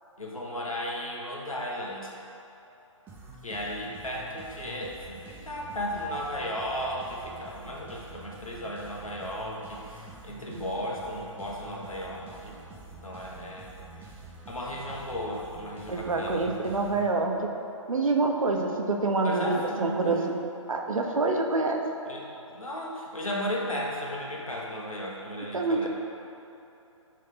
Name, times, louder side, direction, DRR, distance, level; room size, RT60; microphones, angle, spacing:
voice 1, 0.2-2.1 3.4-12.6 12.9-13.7 14.5-16.5 19.2-20.3 22.0-25.9, equal, 90° left, -3 dB, 1.5 m, -35 dB
sound 1, 3.1-17.6, right 2 dB, 10° right, 0.8 m, -47 dB
voice 2, 15.9-17.5 17.9-20.3 20.7-21.8 25.5-25.9, right 3 dB, 80° right, 2 dB, 1.0 m, -26 dB
10.5 x 3.7 x 3.8 m, 3.0 s
figure-of-eight pair, 135°, 17 cm